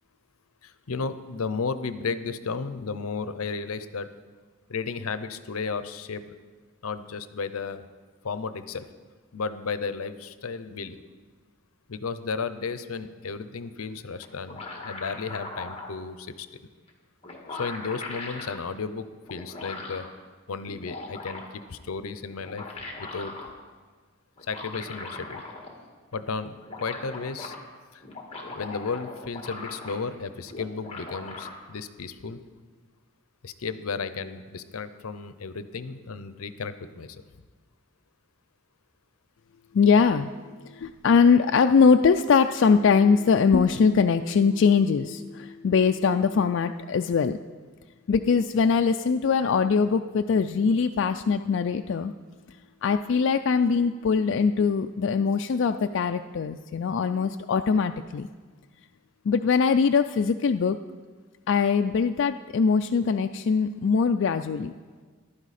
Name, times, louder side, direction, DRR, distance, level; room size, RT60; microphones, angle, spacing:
voice 1, 0.6-4.1 4.7-6.2 6.8-7.8 8.2-8.9 9.3-11.0 11.9-16.5 17.5-20.1 20.5-22.6 23.0-23.3 24.5-25.4 26.1-26.5 26.8-27.6 27.9-28.0 28.5-32.4 33.4-37.2, left 4 dB, 80° left, 12 dB, 0.7 m, -33 dB
sound 1, 14.2-15.9 16.9-17.0 17.2-18.6 19.3-20.1 20.6-21.6 22.3-23.5 24.4-25.8 26.1-26.2 26.4-27.6 28.0-30.2 30.5-31.5, left 3 dB, 25° left, 1.7 m, -39 dB
voice 2, 39.7-40.3 40.7-47.4 48.1-52.1 52.8-58.3 59.3-60.8 61.5-64.7, left 5 dB, 55° left, 7 dB, 0.3 m, -22 dB
15.0 x 11.5 x 4.2 m, 1.4 s
head